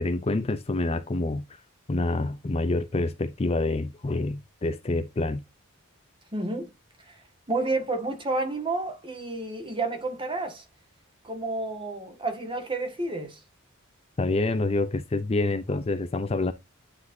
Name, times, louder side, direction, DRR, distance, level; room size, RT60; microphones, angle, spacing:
voice 1, 0.0-1.6 1.9-5.4 14.2-16.5, left 2 dB, 30° left, 0.5 m, -27 dB
voice 2, 6.3-6.7 7.1-7.2 7.5-10.6 11.2-13.4, right 2 dB, 25° right, 1.7 m, -30 dB
9.6 x 4.1 x 2.7 m
head